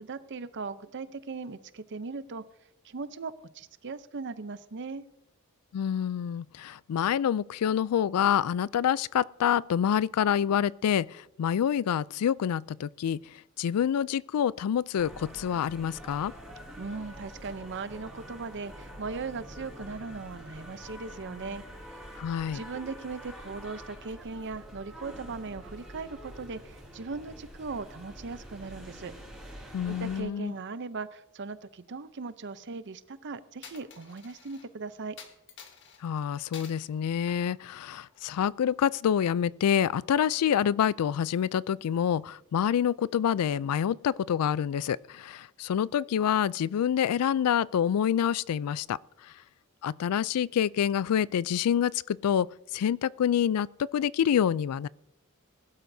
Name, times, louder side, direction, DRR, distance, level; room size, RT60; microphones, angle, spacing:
voice 1, 0.0-2.4 2.8-5.0 16.8-22.2 22.5-29.1 29.9-35.2, right 4 dB, 55° right, 0.6 m, -39 dB
voice 2, 5.7-16.3 22.2-22.6 29.7-30.5 36.0-49.3 49.8-54.9, left 9 dB, 85° left, 0.3 m, -27 dB
Andén Metro DF México, 15.0-30.2, equal, ahead, 3.9 m, -46 dB
Coin (dropping), 33.6-34.7 35.2-36.0 36.5-36.9 37.3-38.4, left 6 dB, 55° left, 1.4 m, -49 dB
20.5 x 12.0 x 2.7 m
head